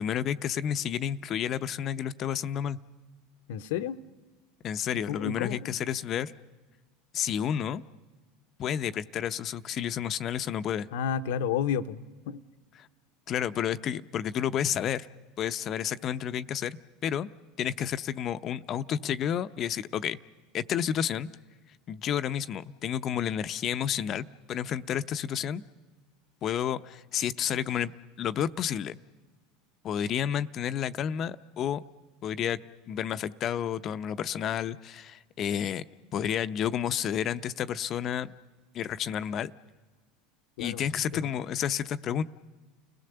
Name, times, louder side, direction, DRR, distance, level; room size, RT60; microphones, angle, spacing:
voice 1, 0.0-2.8 4.6-6.3 7.1-7.8 8.6-10.9 13.3-15.1 15.4-16.8 17.0-17.3 17.6-20.2 20.5-21.3 21.9-25.6 26.4-27.9 28.2-29.0 29.8-31.8 32.2-32.6 32.9-35.8 36.1-38.3 38.7-39.5 40.6-42.2, left 9 dB, 45° left, 13 dB, 0.7 m, -30 dB
voice 2, 3.5-4.0 5.1-5.7 10.9-12.4 40.6-40.8 41.1-41.3, left 8 dB, 70° left, 12 dB, 0.8 m, -31 dB
30.0 x 17.5 x 6.8 m, 1.3 s
hypercardioid pair, 85°, 0 cm